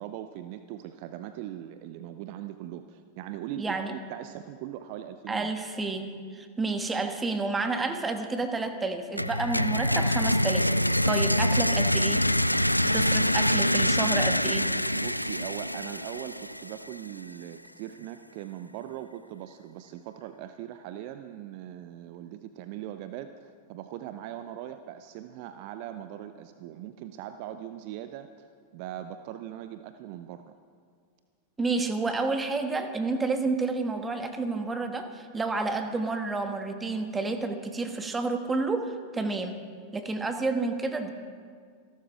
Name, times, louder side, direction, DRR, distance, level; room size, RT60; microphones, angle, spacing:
voice 1, 0.0-5.5 14.9-30.5, right 12 dB, 45° right, 10 dB, 0.6 m, -40 dB
voice 2, 3.6-3.9 5.3-10.7 11.0-12.2 12.9-14.7 31.6-39.6 39.9-41.1, right 3 dB, 15° right, 7 dB, 1.4 m, -30 dB
sound 1, 9.2-16.9, equal, 90° left, 0.3 m, -25 dB
27.0 x 12.0 x 3.6 m, 2.1 s
figure-of-eight pair, 90°, 0 cm